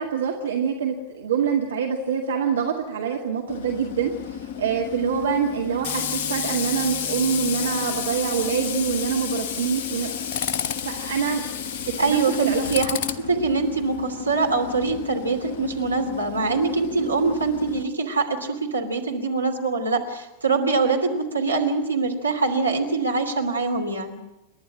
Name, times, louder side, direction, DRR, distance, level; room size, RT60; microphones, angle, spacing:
voice 1, 0.0-10.1 10.5-11.4 11.9-12.6, right 7 dB, 65° right, 1 dB, 2.0 m, -25 dB
Tools, 3.5-17.8, left 7 dB, 50° left, 1.1 m, -31 dB
voice 2, 12.0-24.2, right 4 dB, 80° right, 1 dB, 2.9 m, -24 dB
29.0 x 11.5 x 9.0 m, 0.97 s
figure-of-eight pair, 90°, 0 cm